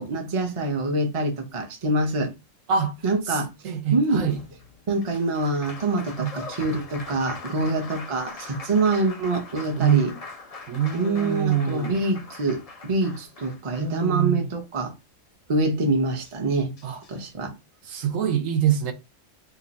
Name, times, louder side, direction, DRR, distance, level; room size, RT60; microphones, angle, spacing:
voice 1, 0.0-2.3 3.0-3.5 3.9-4.3 4.9-10.1 10.9-14.9 15.5-16.7 17.1-17.5, right 2 dB, 35° right, 0.5 m, -25 dB
voice 2, 3.3-4.4 6.2-6.3 7.6-7.7 9.8-10.2 10.7-12.0 13.8-14.5 16.8-17.0 17.8-18.9, right 8 dB, 80° right, 1.1 m, -25 dB
Applause, 4.2-14.5 15.9-16.0 16.2-17.3, left 3 dB, 50° left, 0.4 m, -42 dB
2.9 x 2.5 x 3.9 m
omnidirectional pair, 1.4 m